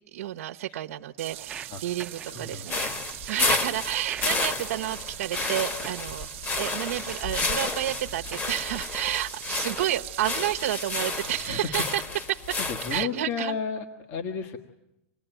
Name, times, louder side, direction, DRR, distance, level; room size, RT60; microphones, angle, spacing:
voice 1, 0.1-2.8 3.2-6.3 6.6-12.0 12.3-12.6 12.9-13.5, right 13 dB, 85° right, 4 dB, 1.0 m, -30 dB
sound 1, 1.2-11.7, right 17 dB, 60° right, 0.9 m, -41 dB
Walk footsteps, 1.3-8.7, right 7 dB, 15° right, 0.9 m, -45 dB
voice 2, 1.7-3.0 11.5-11.8 12.6-14.6, left 5 dB, 40° left, 7 dB, 1.6 m, -34 dB
sound 2, 2.7-13.0, left 3 dB, 25° left, 1.7 m, -31 dB
27.0 x 19.5 x 9.1 m, 0.89 s
supercardioid pair, 155°, 8 cm